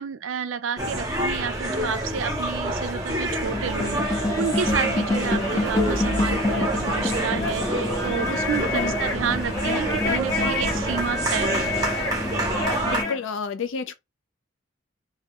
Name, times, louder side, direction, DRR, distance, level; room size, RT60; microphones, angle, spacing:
voice 1, 0.0-11.8, right 6 dB, 70° right, 0.4 m, -30 dB
sound 1, 0.8-13.0, right 1 dB, 20° right, 0.7 m, -28 dB
sound 2, 3.4-13.2, left 2 dB, 15° left, 0.6 m, -27 dB
voice 2, 12.8-13.9, left 5 dB, 70° left, 0.4 m, -30 dB
2.3 x 2.2 x 2.8 m
head